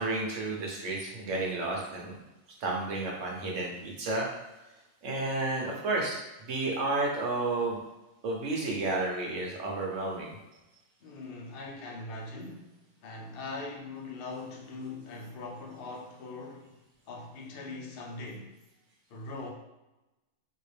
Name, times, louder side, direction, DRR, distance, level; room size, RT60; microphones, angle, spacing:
voice 1, 0.0-2.2 2.6-4.3 5.0-7.8 8.2-10.4, right 2 dB, 85° right, 1.2 m, -31 dB
voice 2, 11.0-12.7 13.0-16.8 17.1-18.5 19.1-19.5, left 3 dB, 55° left, 0.8 m, -41 dB
3.6 x 2.5 x 3.3 m
omnidirectional pair, 1.2 m